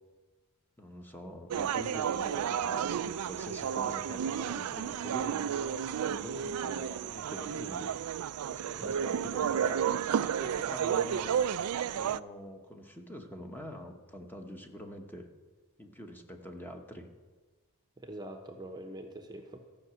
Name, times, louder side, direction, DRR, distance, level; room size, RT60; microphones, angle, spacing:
voice 1, 0.8-7.9 8.5-10.0 10.4-11.5 11.9-15.3 15.8-17.1, equal, 10° left, 3 dB, 1.0 m, -45 dB
sound 1, 1.5-12.2, right 8 dB, 75° right, 0.3 m, -32 dB
voice 2, 8.8-9.2 18.0-19.6, right 1 dB, 20° right, 5 dB, 0.8 m, -44 dB
14.0 x 5.9 x 8.2 m, 1.3 s
head